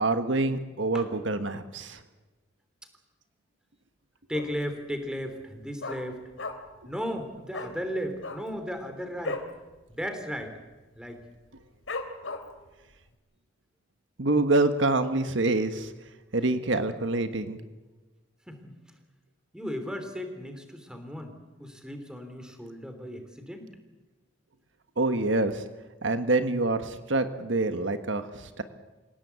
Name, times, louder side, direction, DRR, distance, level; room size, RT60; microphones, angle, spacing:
voice 1, 0.0-2.0 14.2-15.9 16.3-17.6 25.0-25.7 26.0-28.6, right 2 dB, 70° right, 9 dB, 1.4 m, -26 dB
Dog, 4.3-4.7 5.0-5.1 5.4-6.8 7.1-7.2 7.5-7.7 8.1-9.5 9.9-10.1 10.3-10.7 11.2-11.3 11.9-12.7 13.1-13.2, left 3 dB, 80° left, 2.9 m, -36 dB
voice 2, 4.3-6.2 6.8-9.4 9.9-10.6 11.0-11.2 18.5-18.7 19.5-21.3 21.6-23.7, equal, 5° right, 7 dB, 3.2 m, -35 dB
27.5 x 17.5 x 8.2 m, 1.2 s
head